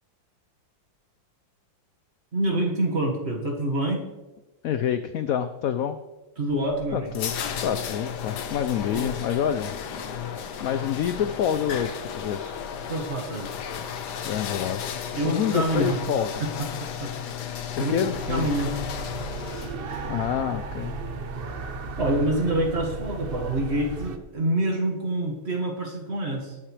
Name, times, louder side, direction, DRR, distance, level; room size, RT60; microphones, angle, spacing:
voice 1, 2.3-4.0 6.4-7.1 8.9-9.1 12.9-13.5 15.1-16.0 16.4-17.1 17.8-18.0 18.3-18.7 22.0-26.6, right 1 dB, 35° right, 0 dB, 1.9 m, -26 dB
voice 2, 4.6-6.0 6.9-7.4 7.6-9.7 10.6-12.5 14.2-14.8 15.1-16.3 17.8-18.5 20.1-21.0, left 9 dB, 80° left, 11 dB, 0.7 m, -27 dB
sound 1, 6.5-20.0, left 7 dB, 65° left, 1.4 m, -34 dB
sound 2, 18.1-24.2, right 3 dB, 60° right, 0.5 m, -35 dB
18.5 x 8.9 x 3.3 m, 1.1 s
omnidirectional pair, 2.1 m